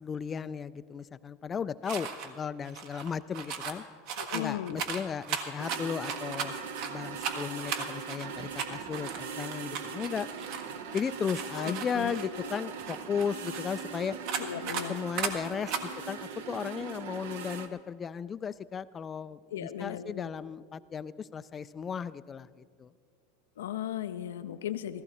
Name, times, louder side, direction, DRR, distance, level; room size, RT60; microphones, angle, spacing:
voice 1, 0.0-3.8 4.3-6.6 6.8-10.3 10.9-14.2 14.9-22.9, left 7 dB, 25° left, 16 dB, 0.3 m, -35 dB
sound 1, 1.9-2.3 2.6-3.8 4.1-6.9 7.2-10.7 10.9-13.8 14.3-14.9 15.2-15.3 15.7-15.8, right 7 dB, 60° right, 1.4 m, -36 dB
voice 2, 4.2-4.8 11.5-12.6 14.4-15.0 19.5-20.3 23.6-25.0, left 11 dB, 90° left, 9 dB, 0.5 m, -37 dB
sound 2, 5.6-17.7, right 6 dB, 80° right, 0.9 m, -40 dB
15.5 x 14.5 x 4.2 m, 2.1 s
supercardioid pair, 115°, 0 cm